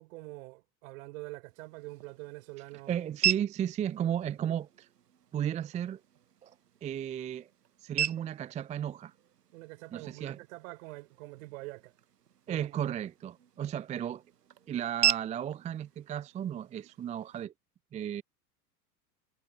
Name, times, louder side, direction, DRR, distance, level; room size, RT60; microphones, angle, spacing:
voice 1, 0.0-3.0 9.5-11.9 12.5-12.8, right 22 dB, 55° right, 3.8 m, -45 dB
sound 1, 1.5-17.5, right 9 dB, 80° right, 1.2 m, -38 dB
voice 2, 2.9-4.9 5.3-6.0 6.4-6.5 6.8-7.5 7.8-9.1 9.9-10.4 12.5-14.2 14.7-17.5 17.9-18.2, right 10 dB, 15° right, 0.5 m, -34 dB
figure-of-eight pair, 85°, 48 cm